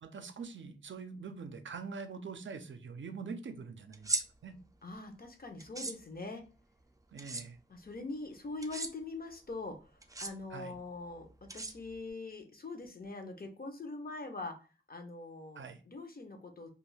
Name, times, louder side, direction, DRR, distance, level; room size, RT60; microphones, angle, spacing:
voice 1, 0.0-4.1 4.4-4.5 7.1-7.6 10.5-10.8 15.6-15.8, right 5 dB, 85° right, 8 dB, 0.4 m, -44 dB
sound 1, 3.9-4.2 5.6-5.9 7.2-7.4 8.6-8.9 10.0-10.3 11.5-12.1, right 3 dB, 20° right, 0.3 m, -36 dB
voice 2, 4.8-6.4 7.7-14.6 14.9-16.7, left 3 dB, 50° left, 5 dB, 0.6 m, -43 dB
2.3 x 2.3 x 3.1 m, 0.35 s
wide cardioid pair, 65°, 19 cm